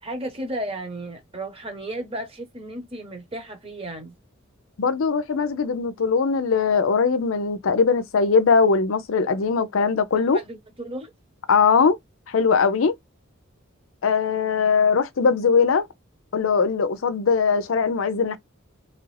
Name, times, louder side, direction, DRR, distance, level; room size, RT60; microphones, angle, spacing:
voice 1, 0.0-4.1 10.3-11.1, right 1 dB, 30° right, 1.0 m, -34 dB
voice 2, 4.8-10.4 11.5-12.0 12.3-12.9 14.0-15.9 16.3-18.4, left 5 dB, 75° left, 0.5 m, -20 dB
3.0 x 2.4 x 3.2 m
head